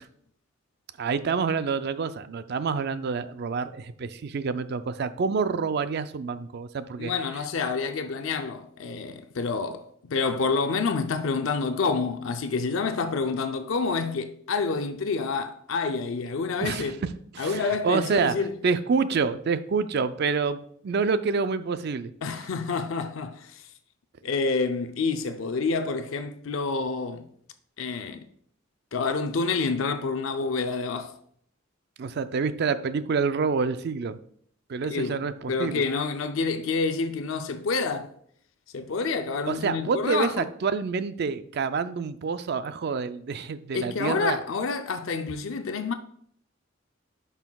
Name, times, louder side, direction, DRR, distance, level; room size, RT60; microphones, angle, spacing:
voice 1, 1.0-7.1 16.6-16.9 17.3-18.4 18.6-22.1 32.0-34.2 34.7-35.8 39.5-44.4, right 5 dB, 55° right, 0.4 m, -27 dB
voice 2, 7.0-9.8 10.1-17.0 17.4-18.5 22.2-23.7 24.2-27.3 27.8-28.2 28.9-31.1 34.9-35.2 35.5-38.1 38.7-40.5 43.7-45.9, left 4 dB, 80° left, 0.5 m, -28 dB
10.5 x 5.6 x 2.3 m
head